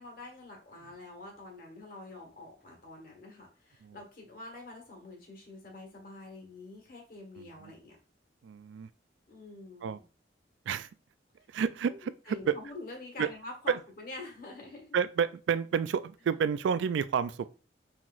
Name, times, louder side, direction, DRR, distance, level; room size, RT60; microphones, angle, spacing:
voice 1, 0.0-8.0 9.3-10.0 11.9-12.0 12.3-14.9, left 2 dB, 55° left, 1.5 m, -46 dB
voice 2, 7.4-7.7 8.4-8.9 9.8-10.0 10.7-10.9 11.5-12.6 13.2-13.3 13.7-13.8 14.9-17.5, right 7 dB, 85° right, 0.3 m, -30 dB
5.7 x 3.0 x 2.5 m
head